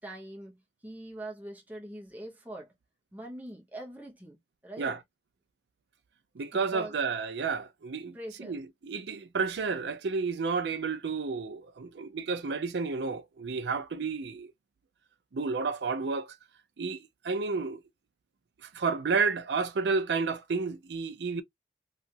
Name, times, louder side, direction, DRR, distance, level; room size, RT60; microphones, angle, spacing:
voice 1, 0.0-2.7 3.1-5.0 6.5-7.0 8.1-8.6, right 1 dB, 10° right, 0.8 m, -43 dB
voice 2, 6.4-14.5 15.3-16.4 16.8-17.8 18.6-21.4, right 4 dB, 70° right, 0.5 m, -31 dB
2.9 x 2.4 x 2.6 m
head